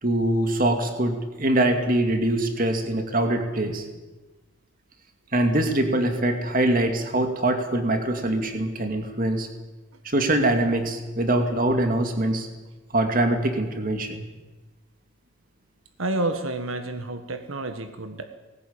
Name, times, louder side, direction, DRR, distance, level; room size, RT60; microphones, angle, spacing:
voice 1, 0.0-3.8 5.3-9.5 10.0-12.5 12.9-14.2, right 1 dB, 40° right, 5 dB, 2.5 m, -23 dB
voice 2, 16.0-18.3, right 2 dB, 85° right, 8 dB, 1.5 m, -29 dB
19.5 x 17.0 x 8.9 m, 1.2 s
head